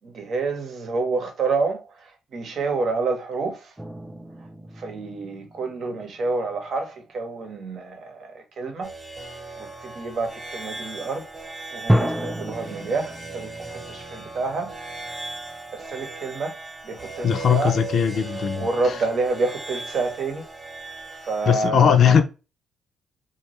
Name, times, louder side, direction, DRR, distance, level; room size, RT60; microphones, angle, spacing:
voice 1, 0.0-3.7 4.8-8.9 9.6-11.3 11.7-14.7 15.4-16.6 16.8-17.7 18.6-20.4 21.2-22.2, right 3 dB, 60° right, 0.9 m, -28 dB
sound 1, 3.8-6.8 7.3-7.6 11.9-16.2, equal, 10° right, 0.4 m, -30 dB
sound 2, 8.8-21.7, right 3 dB, 30° right, 0.9 m, -38 dB
voice 2, 17.2-18.7 21.5-22.2, left 8 dB, 60° left, 0.5 m, -19 dB
2.6 x 2.3 x 3.0 m
cardioid pair, 90°, 0 cm